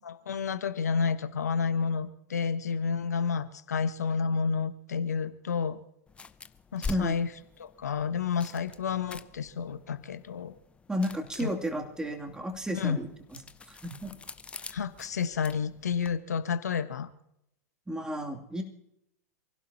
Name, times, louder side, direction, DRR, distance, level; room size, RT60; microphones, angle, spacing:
voice 1, 0.0-5.8 6.7-7.3 7.6-10.5 11.4-11.5 12.8-13.0 14.7-17.1, left 6 dB, 75° left, 10 dB, 1.4 m, -30 dB
sound 1, 6.1-16.2, left 4 dB, 15° left, 0.7 m, -45 dB
voice 2, 10.9-13.1 13.7-14.1 17.9-18.6, equal, 10° right, 2 dB, 2.8 m, -32 dB
28.0 x 16.5 x 2.9 m, 0.78 s
figure-of-eight pair, 100°, 9 cm